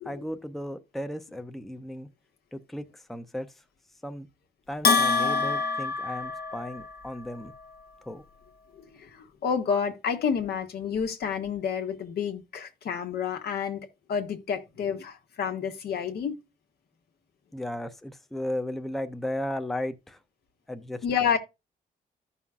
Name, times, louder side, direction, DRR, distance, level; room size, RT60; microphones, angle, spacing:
voice 1, 0.0-2.1 2.5-3.5 4.0-4.3 4.7-7.5 8.1-8.2 17.5-20.2 20.7-21.3, left 1 dB, ahead, 0.5 m, -35 dB
Bell, 4.8-7.0, left 4 dB, 70° left, 0.9 m, -25 dB
voice 2, 8.7-16.4 21.0-21.4, left 7 dB, 85° left, 1.3 m, -30 dB
15.0 x 5.6 x 2.4 m
wide cardioid pair, 135°, 16 cm